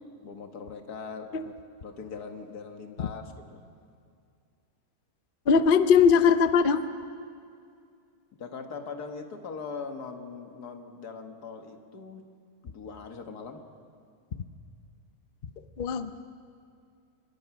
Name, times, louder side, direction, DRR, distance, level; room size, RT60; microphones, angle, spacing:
voice 1, 0.2-1.5 1.8-3.6 8.4-12.2 12.6-13.6, left 5 dB, 85° left, 5 dB, 2.1 m, -41 dB
voice 2, 5.5-6.8 15.8-16.1, left 6 dB, 45° left, 10 dB, 0.8 m, -20 dB
25.5 x 20.5 x 6.0 m, 2.3 s
omnidirectional pair, 1.6 m